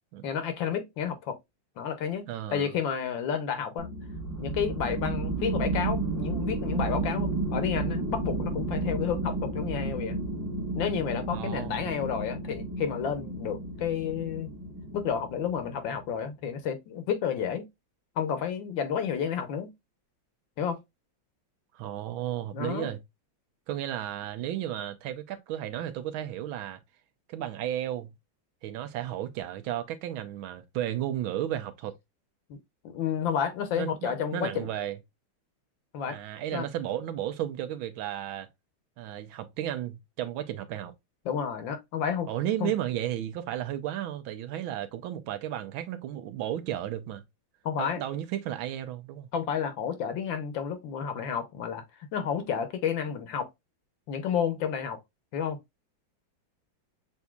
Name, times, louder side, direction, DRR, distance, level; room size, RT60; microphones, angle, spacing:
voice 1, 0.2-1.4 1.8-3.9 4.4-10.2 10.8-14.5 14.9-17.7 18.2-19.7 20.6-20.8 22.5-22.9 32.8-34.7 35.9-36.2 36.5-36.7 41.2-42.3 42.6-42.7 47.6-48.0 49.3-51.8 52.1-53.5 54.1-55.0 55.3-55.6, left 8 dB, 70° left, 1.5 m, -31 dB
voice 2, 2.3-2.7 11.3-11.9 21.7-23.0 23.7-26.8 27.3-28.1 28.6-32.0 33.8-35.0 36.1-38.5 39.0-40.9 42.3-47.2 47.8-49.3, right 11 dB, 80° right, 1.5 m, -33 dB
sound 1, 3.8-15.9, right 2 dB, 15° right, 0.8 m, -32 dB
7.1 x 2.7 x 2.2 m
omnidirectional pair, 2.3 m